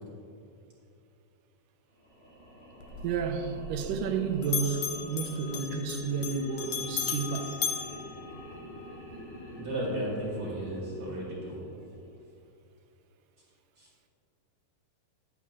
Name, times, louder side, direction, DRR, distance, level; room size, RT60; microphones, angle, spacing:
sound 1, 1.9-12.2, equal, 40° left, 2.4 m, -47 dB
Bell, 2.8-4.2 4.4-8.9, left 8 dB, 75° left, 1.5 m, -36 dB
voice 1, 3.0-7.6, right 5 dB, 85° right, 2.3 m, -31 dB
voice 2, 9.6-11.6 13.8-13.9, right 1 dB, 45° right, 2.4 m, -34 dB
10.5 x 9.5 x 3.6 m
omnidirectional pair, 3.8 m